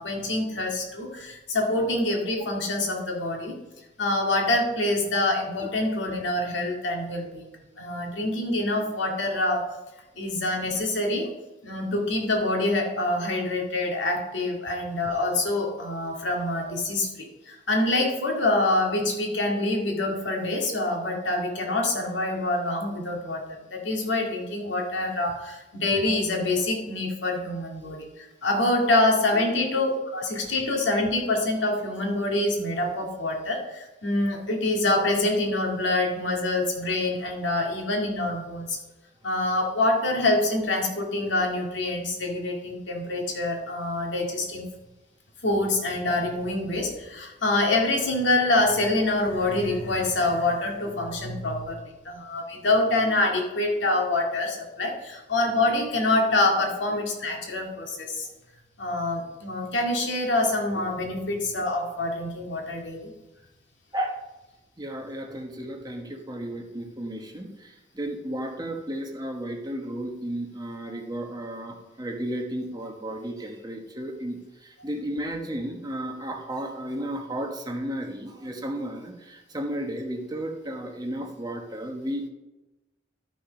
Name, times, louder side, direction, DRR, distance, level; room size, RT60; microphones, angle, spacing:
voice 1, 0.0-3.5 4.0-7.5 7.8-9.7 10.2-11.3 11.6-38.8 39.2-44.6 45.4-51.8 52.0-58.3 58.8-63.1, left 2 dB, 80° left, 0 dB, 2.2 m, -26 dB
voice 2, 64.8-67.7 67.9-74.4 74.8-82.3, right 1 dB, 20° right, 2 dB, 1.2 m, -33 dB
12.0 x 6.1 x 5.2 m, 1.0 s
head